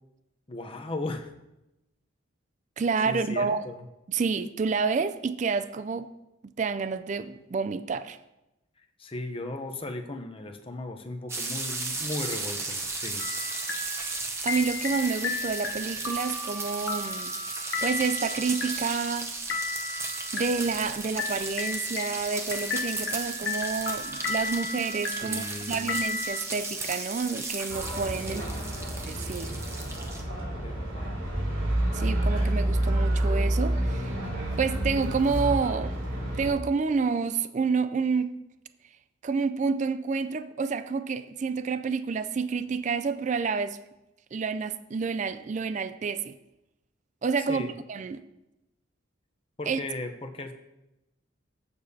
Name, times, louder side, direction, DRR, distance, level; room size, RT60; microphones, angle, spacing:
voice 1, 0.5-1.3 3.1-3.9 9.0-13.3 25.1-25.9 28.2-28.8 30.6-31.2 47.5-47.7 49.6-50.5, left 2 dB, 25° left, 0.7 m, -37 dB
voice 2, 2.8-3.6 4.1-6.1 6.6-8.2 13.9-14.1 14.4-17.3 17.8-19.3 20.3-28.5 29.0-29.5 31.9-34.1 34.6-36.0 36.4-38.4 39.2-43.8 44.3-46.4 47.2-48.2 49.6-49.8, right 5 dB, 35° right, 0.3 m, -29 dB
sound 1, 11.3-30.2, right 3 dB, 15° right, 0.7 m, -35 dB
sound 2, 13.2-26.4, left 3 dB, 70° left, 0.9 m, -35 dB
sound 3, 27.7-36.5, right 1 dB, 75° right, 2.8 m, -29 dB
15.0 x 6.9 x 2.8 m
head